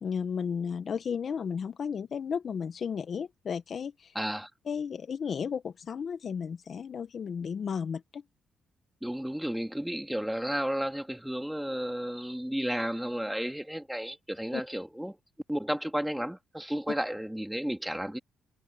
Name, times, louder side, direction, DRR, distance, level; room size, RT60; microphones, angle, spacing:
voice 1, 0.0-4.1 4.7-8.2 14.5-14.6, left 6 dB, 50° left, 1.1 m, -34 dB
voice 2, 4.1-4.5 9.0-15.2 15.5-18.2, equal, 5° right, 2.5 m, -33 dB
cardioid pair, 90°, 0 cm